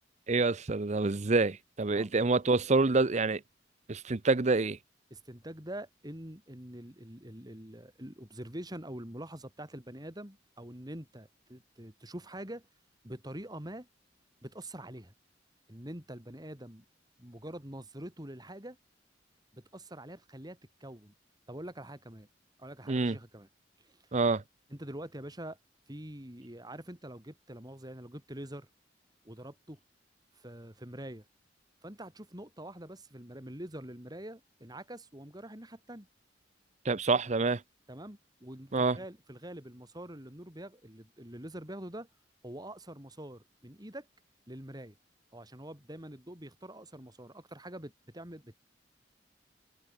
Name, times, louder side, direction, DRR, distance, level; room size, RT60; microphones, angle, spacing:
voice 1, 0.3-3.4 3.9-4.8 22.9-23.2 24.1-24.4 36.9-37.6 38.7-39.0, right 3 dB, 40° right, 0.7 m, -27 dB
voice 2, 5.1-12.7 13.0-13.9 14.4-15.1 15.7-16.8 17.2-18.8 19.5-21.1 21.5-22.3 22.6-23.5 23.8-24.0 24.7-25.6 25.9-28.7 29.2-29.8 30.3-31.3 31.8-36.1 37.9-42.1 42.4-44.1 44.5-45.0 45.3-48.6, right 1 dB, 20° right, 4.4 m, -45 dB
head